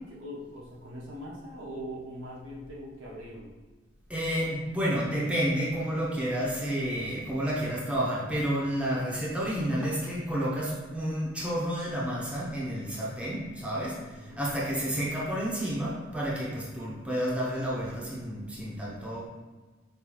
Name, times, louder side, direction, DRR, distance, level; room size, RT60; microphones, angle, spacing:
voice 1, 0.0-3.5 14.0-14.4, equal, 80° right, -5 dB, 1.2 m, -41 dB
voice 2, 4.1-14.0 14.4-19.3, equal, 5° right, -6 dB, 0.7 m, -30 dB
5.3 x 2.7 x 3.1 m, 1.3 s
head